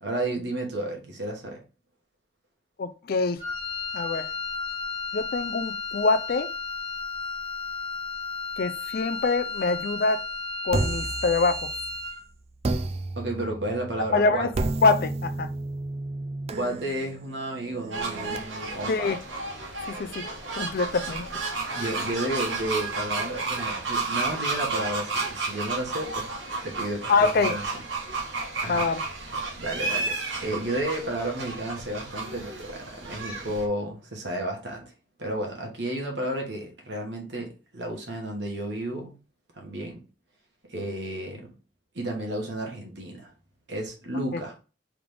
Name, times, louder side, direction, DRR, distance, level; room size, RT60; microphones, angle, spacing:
voice 1, 0.0-1.6 13.2-14.5 16.5-19.1 21.7-26.2 26.6-27.6 28.6-28.9 29.6-30.1 30.4-34.9 35.2-39.2 39.5-40.0 40.7-41.5 41.9-43.3 43.7-44.5, right 1 dB, 70° right, 1.4 m, -32 dB
voice 2, 2.8-3.4 3.9-4.3 5.1-6.5 8.6-10.2 10.6-11.7 14.1-14.5 14.8-15.5 18.9-19.2 19.9-20.3 20.5-21.3 27.1-27.5 28.7-29.0 44.3-44.4, left 4 dB, 55° left, 0.4 m, -25 dB
Wind instrument woodwind instrument, 3.4-12.3, left 4 dB, 25° left, 1.5 m, -33 dB
sound 1, 10.7-12.1 12.6-18.4, right 2 dB, 35° right, 0.4 m, -32 dB
sound 2, 17.9-33.7, right 3 dB, 85° right, 1.3 m, -32 dB
3.8 x 3.4 x 3.3 m
head